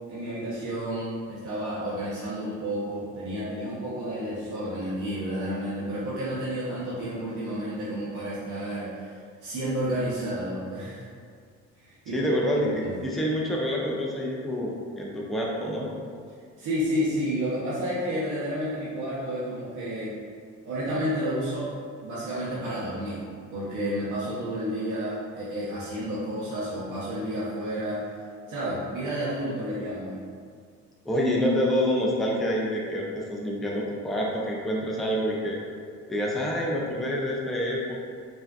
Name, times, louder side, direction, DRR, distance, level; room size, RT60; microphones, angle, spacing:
voice 1, 0.1-11.1 11.7-12.3 12.6-12.9 16.6-20.1 20.6-21.7 22.0-23.2 23.5-28.0 28.5-30.2, equal, 80° right, -10 dB, 0.8 m, -31 dB
voice 2, 12.1-12.7 13.0-15.9 31.1-35.6 36.1-38.0, equal, ahead, -3 dB, 0.4 m, -27 dB
3.4 x 2.6 x 2.3 m, 2.1 s
cardioid pair, 90°, 30 cm